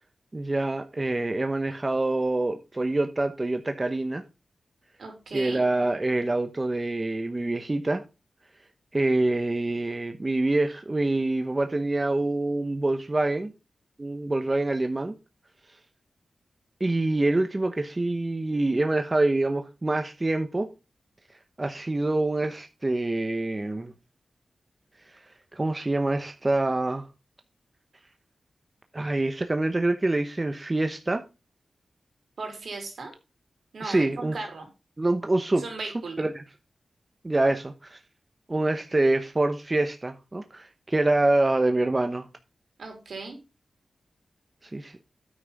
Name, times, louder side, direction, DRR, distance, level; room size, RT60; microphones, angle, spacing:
voice 1, 0.3-4.2 5.3-8.0 8.9-13.5 14.0-15.1 16.8-20.7 21.6-23.9 25.5-27.1 28.9-31.2 33.8-34.3 35.0-36.4 37.2-38.0 38.5-42.3 44.6-45.0, right 2 dB, 30° right, 1.0 m, -26 dB
voice 2, 5.0-5.6 32.4-33.1 33.7-34.7 35.6-36.2 42.8-43.4, right 3 dB, 75° right, 3.7 m, -37 dB
9.5 x 6.0 x 5.3 m
cardioid pair, 65°, 0 cm